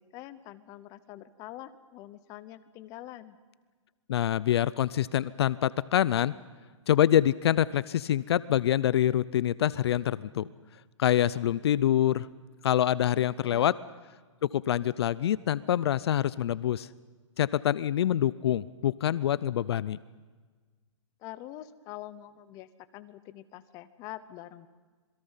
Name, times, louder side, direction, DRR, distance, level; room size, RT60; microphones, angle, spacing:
voice 1, 0.0-3.4 13.1-13.7 21.2-24.7, left 14 dB, 20° left, 14 dB, 0.9 m, -45 dB
voice 2, 4.1-6.3 6.9-10.5 11.0-12.3 12.6-13.7 14.4-16.9 17.4-20.0, left 11 dB, 55° left, 19 dB, 0.6 m, -25 dB
27.0 x 21.5 x 5.7 m, 1.4 s
hypercardioid pair, 155°, 16 cm